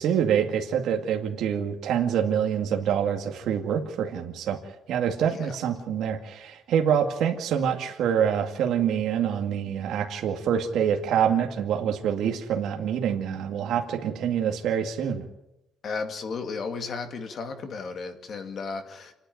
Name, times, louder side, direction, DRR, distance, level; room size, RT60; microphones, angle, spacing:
voice 1, 0.0-4.6 4.9-15.2, right 8 dB, 70° right, 3 dB, 2.1 m, -26 dB
voice 2, 15.8-19.1, left 4 dB, 45° left, 6 dB, 2.3 m, -34 dB
29.0 x 10.0 x 9.3 m, 0.91 s
cardioid pair, 160°, 0 cm